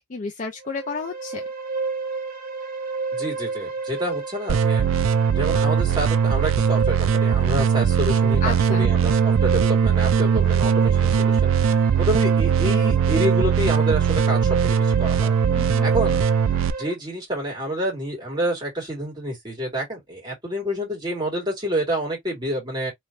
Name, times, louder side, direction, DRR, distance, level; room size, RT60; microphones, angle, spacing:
voice 1, 0.1-1.4 8.4-8.9 15.5-15.9, left 4 dB, 35° left, 0.5 m, -31 dB
sound 1, 0.6-16.9, right 4 dB, 40° right, 1.1 m, -30 dB
voice 2, 3.1-4.9 5.3-11.5 12.0-15.4 15.8-16.2 16.8-22.9, equal, 20° right, 2.3 m, -28 dB
sound 2, 4.5-16.7, right 7 dB, 65° right, 0.3 m, -20 dB
3.3 x 3.1 x 2.4 m
head